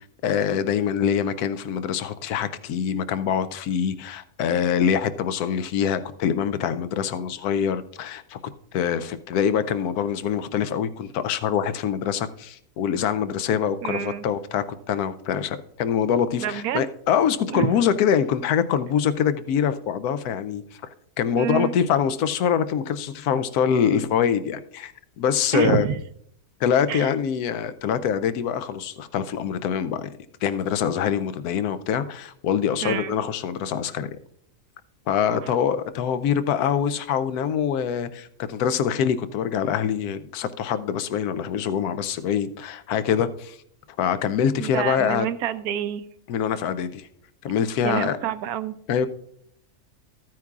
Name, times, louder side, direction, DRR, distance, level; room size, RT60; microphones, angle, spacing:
voice 1, 0.2-8.4 8.7-20.6 21.2-25.9 26.6-30.1 30.4-34.1 35.1-43.6 44.0-45.3 46.3-47.1 47.4-48.2 48.9-49.1, left 8 dB, 85° left, 1.1 m, -24 dB
voice 2, 13.8-14.3 16.4-16.9 17.5-17.7 21.4-21.7 25.5-26.0 26.9-27.1 32.8-33.1 35.3-35.5 44.6-46.1 47.8-48.8, right 9 dB, 80° right, 1.1 m, -27 dB
13.5 x 9.2 x 2.4 m
omnidirectional pair, 1.6 m